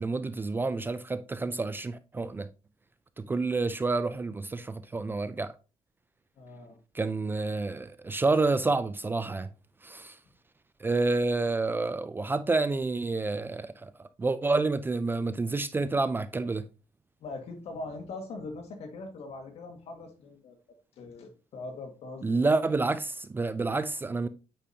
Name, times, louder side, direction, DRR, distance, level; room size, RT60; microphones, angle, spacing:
voice 1, 0.0-2.5 3.2-5.5 6.9-9.5 9.8-10.2 10.8-16.6 22.2-24.3, right 3 dB, 20° right, 0.4 m, -29 dB
voice 2, 6.4-6.8 17.2-20.6 21.0-22.4, left 3 dB, 60° left, 1.9 m, -41 dB
8.5 x 5.0 x 2.8 m
cardioid pair, 125°, 12 cm